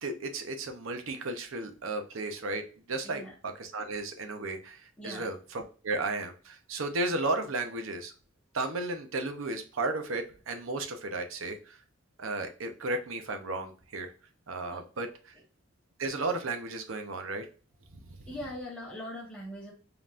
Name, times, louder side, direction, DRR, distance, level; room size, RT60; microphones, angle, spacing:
voice 1, 0.0-2.6 2.9-8.1 8.5-11.8 12.2-14.1 14.5-15.3 16.0-17.5, right 2 dB, 70° right, 6 dB, 0.7 m, -34 dB
voice 2, 5.0-5.3 14.7-14.8 18.3-19.7, left 1 dB, 5° left, -4 dB, 1.2 m, -41 dB
5.3 x 2.9 x 2.5 m, 0.38 s
head